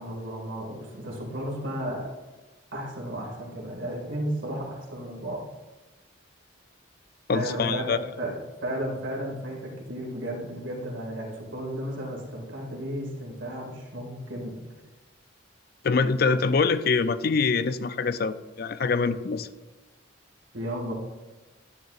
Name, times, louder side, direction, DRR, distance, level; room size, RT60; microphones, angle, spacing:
voice 1, 0.0-2.1 2.7-5.4 7.3-8.3 8.6-14.6 20.5-20.9, right 1 dB, 70° right, -2 dB, 2.1 m, -33 dB
voice 2, 7.3-8.0 15.8-19.5, left 4 dB, 50° left, 13 dB, 0.4 m, -24 dB
10.5 x 9.3 x 2.5 m, 1.2 s
head